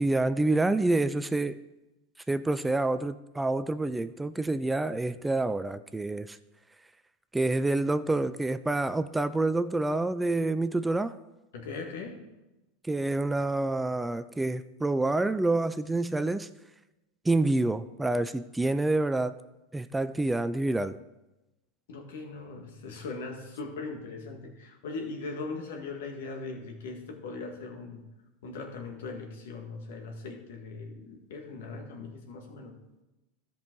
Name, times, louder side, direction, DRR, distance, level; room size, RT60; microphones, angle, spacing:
voice 1, 0.0-1.6 2.3-6.4 7.3-11.1 12.8-16.5 17.3-19.3 19.7-21.0, right 2 dB, 10° right, 0.4 m, -27 dB
voice 2, 11.5-12.2 21.9-28.1 28.4-32.7, left 3 dB, 75° left, 1.8 m, -39 dB
13.5 x 5.4 x 4.6 m
hypercardioid pair, 95°, 0 cm